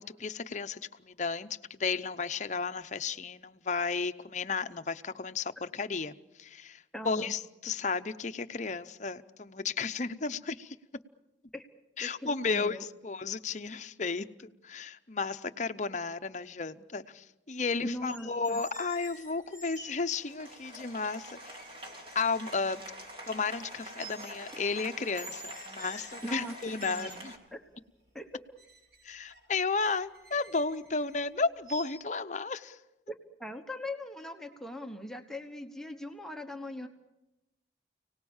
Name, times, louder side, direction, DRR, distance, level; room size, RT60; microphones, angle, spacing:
voice 1, 0.0-10.8 12.0-21.6 22.1-22.8 23.3-27.3 29.0-32.8, left 4 dB, 40° left, 11 dB, 0.8 m, -33 dB
voice 2, 6.9-7.3 11.5-11.6 12.0-12.8 17.8-18.6 26.2-26.5 26.9-27.6 28.1-28.3 33.1-36.9, left 1 dB, 5° left, 4 dB, 1.2 m, -40 dB
sound 1, 18.0-20.0 20.9-21.0 21.6-23.7 24.0-24.8 25.2-27.4 28.6-31.2 31.7-31.8, right 1 dB, 55° right, 4.9 m, -49 dB
Applause, 18.2-27.4, right 1 dB, 30° right, 3.1 m, -47 dB
30.0 x 18.5 x 7.2 m, 0.95 s
head